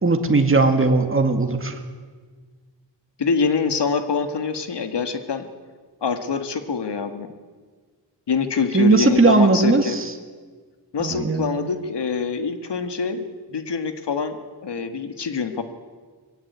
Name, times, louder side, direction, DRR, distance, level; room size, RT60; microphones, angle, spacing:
voice 1, 0.0-1.8 8.7-10.1 11.0-11.4, right 3 dB, 30° right, 5 dB, 2.0 m, -18 dB
voice 2, 3.2-5.5 6.0-7.3 8.3-10.0 10.9-14.4 14.6-15.6, left 5 dB, 75° left, 8 dB, 1.8 m, -25 dB
21.5 x 16.0 x 9.6 m, 1.5 s
wide cardioid pair, 125°, 42 cm